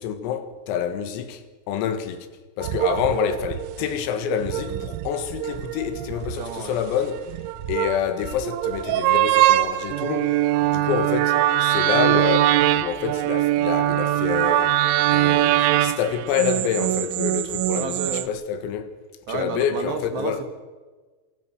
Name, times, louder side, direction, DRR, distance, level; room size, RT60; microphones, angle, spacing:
voice 1, 0.0-2.3 2.6-7.3 7.7-14.8 15.1-19.0 19.3-20.4, left 8 dB, 90° left, 4.4 m, -27 dB
sound 1, 2.6-18.3, right 14 dB, 80° right, 3.1 m, -22 dB
voice 2, 6.3-6.8 17.7-18.3 19.3-20.5, right 5 dB, 65° right, 3.6 m, -31 dB
27.5 x 15.5 x 6.3 m
omnidirectional pair, 5.9 m